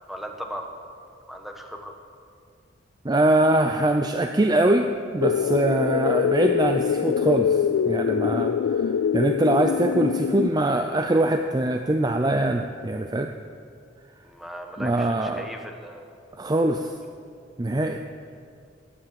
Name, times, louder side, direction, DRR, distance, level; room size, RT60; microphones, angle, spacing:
voice 1, 0.1-0.9 1.3-2.0 14.2-16.1, equal, ahead, 3 dB, 1.2 m, -38 dB
voice 2, 3.0-13.3 14.8-15.5 16.3-17.0 17.6-18.0, right 1 dB, 20° right, 6 dB, 0.5 m, -23 dB
sound 1, 5.2-10.5, left 7 dB, 90° left, 0.3 m, -24 dB
15.5 x 10.0 x 7.1 m, 2.3 s
head